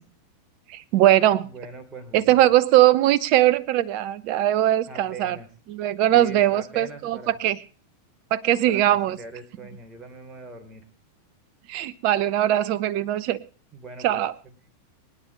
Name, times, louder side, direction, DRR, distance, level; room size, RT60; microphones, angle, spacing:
voice 1, 0.7-1.5 2.1-5.4 5.7-7.6 8.3-9.2 11.7-13.4 14.0-14.3, right 13 dB, 45° right, 17 dB, 0.9 m, -20 dB
voice 2, 1.4-2.4 4.9-5.5 6.1-7.4 8.7-10.8 13.7-14.7, right 3 dB, 20° right, 5 dB, 3.7 m, -42 dB
24.5 x 9.9 x 3.2 m, 0.40 s
figure-of-eight pair, 90°, 0 cm